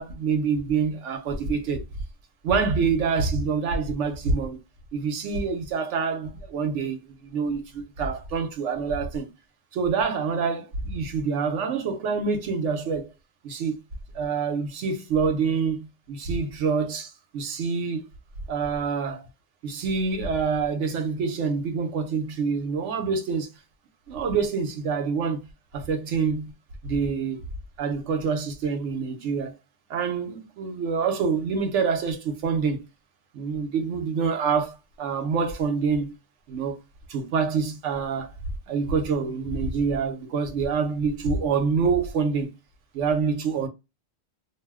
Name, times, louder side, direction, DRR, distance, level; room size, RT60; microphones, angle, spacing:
voice 1, 0.0-1.8 2.4-4.6 4.9-9.3 9.7-13.1 13.4-13.7 14.1-18.0 18.5-19.3 19.6-23.5 24.1-25.5 25.7-26.5 26.8-27.4 27.8-29.6 29.9-32.8 33.3-36.1 36.5-36.8 37.1-38.3 38.7-42.5 42.9-43.7, right 5 dB, 90° right, 1.0 m, -26 dB
2.6 x 2.1 x 3.4 m
omnidirectional pair, 1.2 m